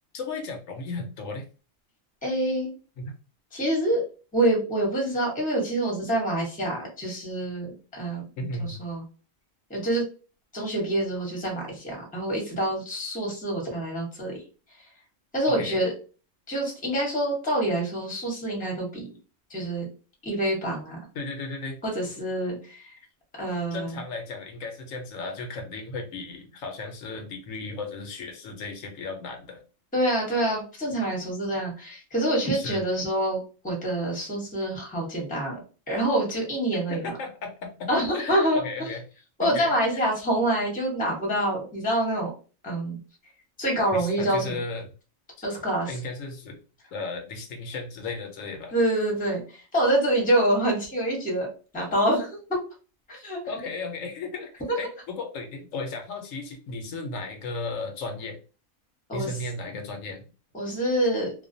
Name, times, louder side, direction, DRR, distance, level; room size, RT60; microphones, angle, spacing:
voice 1, 0.1-1.4 3.0-3.1 8.4-8.8 15.4-15.9 21.1-21.8 23.7-29.6 32.5-32.8 36.9-39.0 39.4-40.1 43.9-44.9 45.9-46.6 46.9-48.7 53.5-54.5 54.8-58.4 59.1-60.2, left 3 dB, 75° left, 4 dB, 0.9 m, -35 dB
voice 2, 2.2-2.7 3.5-4.0 4.3-8.2 8.6-9.0 9.7-10.0 10.5-14.4 15.3-15.9 16.5-19.1 19.5-19.9 20.2-21.0 21.8-22.9 23.4-24.0 29.9-35.6 35.9-37.1 37.9-38.9 39.4-42.3 42.6-43.0 43.6-44.6 45.4-46.0 48.7-51.5 51.7-52.3 53.1-53.4 54.7-54.8 59.1-59.3 60.5-61.3, right 1 dB, 10° left, -2 dB, 0.7 m, -26 dB
2.4 x 2.1 x 2.5 m, 0.36 s
omnidirectional pair, 1.4 m